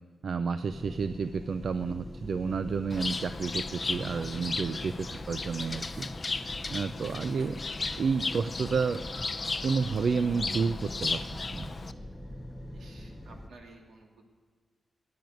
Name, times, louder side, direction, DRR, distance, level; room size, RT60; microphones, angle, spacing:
voice 1, 0.2-6.1 6.7-7.6 8.0-9.0 9.6-11.7, right 5 dB, 55° right, 10 dB, 0.4 m, -30 dB
sound 1, 0.7-13.5, left 1 dB, ahead, 0.8 m, -43 dB
Bird, 2.9-11.9, left 3 dB, 25° left, 0.5 m, -35 dB
voice 2, 12.7-14.3, right 3 dB, 75° right, 1 dB, 2.7 m, -54 dB
15.5 x 9.6 x 9.2 m, 1.5 s
wide cardioid pair, 180°, 0 cm